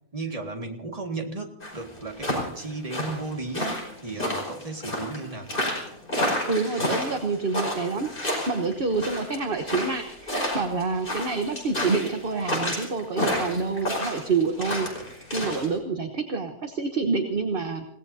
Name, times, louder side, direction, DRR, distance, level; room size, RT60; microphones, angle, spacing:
voice 1, 0.1-5.5, right 3 dB, 25° right, 2 dB, 1.9 m, -34 dB
sound 1, 1.6-15.7, left 1 dB, 35° left, 5.3 m, -30 dB
voice 2, 6.4-8.1 8.5-17.9, right 4 dB, 40° right, 6 dB, 1.2 m, -27 dB
29.5 x 17.5 x 2.8 m, 0.74 s
omnidirectional pair, 1.6 m